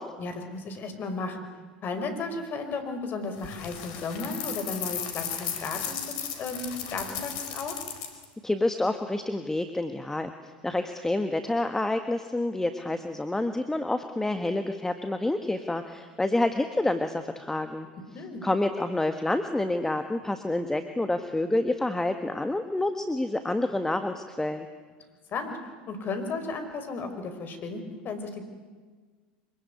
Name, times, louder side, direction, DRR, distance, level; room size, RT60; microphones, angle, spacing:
voice 1, 0.2-1.5 1.8-7.8 18.1-18.5 25.3-25.6 25.9-28.4, left 3 dB, 40° left, 7 dB, 5.2 m, -34 dB
sound 1, 3.4-8.2, left 8 dB, 65° left, 4.5 m, -35 dB
voice 2, 8.4-10.3 10.6-17.9 18.4-24.7, left 2 dB, 10° left, 8 dB, 1.7 m, -28 dB
25.0 x 23.5 x 9.7 m, 1.4 s
hypercardioid pair, 80°, 5 cm